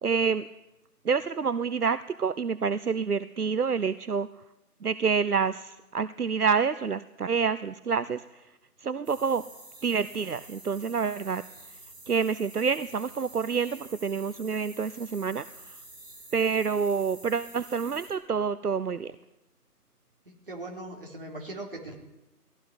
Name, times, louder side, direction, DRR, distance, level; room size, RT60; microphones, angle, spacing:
voice 1, 0.0-0.5 1.0-4.3 4.8-8.4 8.8-9.5 9.8-11.4 12.1-15.8 16.3-19.2, right 6 dB, 70° right, 14 dB, 0.9 m, -28 dB
sound 1, 9.0-18.1, right 2 dB, 10° right, 4.0 m, -49 dB
voice 2, 20.3-22.0, right 2 dB, 35° right, 0 dB, 3.8 m, -40 dB
18.0 x 16.5 x 9.7 m, 0.94 s
figure-of-eight pair, 180°, 48 cm